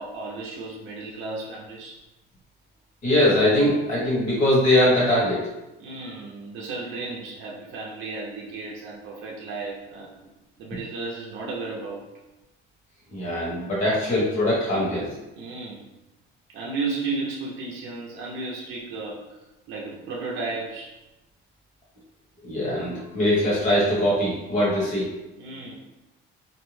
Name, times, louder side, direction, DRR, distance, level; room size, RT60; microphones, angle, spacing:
voice 1, 0.0-2.0 5.8-10.2 10.6-12.0 15.4-15.8 16.5-19.4 19.7-20.9 25.4-25.8, right 3 dB, 65° right, -3 dB, 0.6 m, -34 dB
voice 2, 3.0-5.4 13.1-15.1 22.4-25.1, left 1 dB, 35° left, -7 dB, 1.2 m, -21 dB
2.6 x 2.1 x 3.1 m, 1.0 s
cardioid pair, 145°, 21 cm